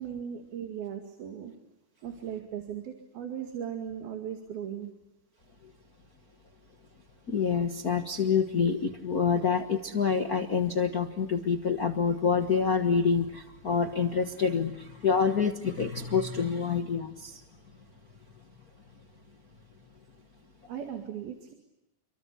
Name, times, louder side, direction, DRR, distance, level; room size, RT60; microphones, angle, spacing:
voice 1, 0.0-1.5 2.0-4.9 20.7-21.5, right 9 dB, 85° right, 5 dB, 4.1 m, -37 dB
voice 2, 7.3-17.4, left 6 dB, 90° left, 5 dB, 0.8 m, -27 dB
29.0 x 24.0 x 8.2 m, 0.91 s
omnidirectional pair, 4.2 m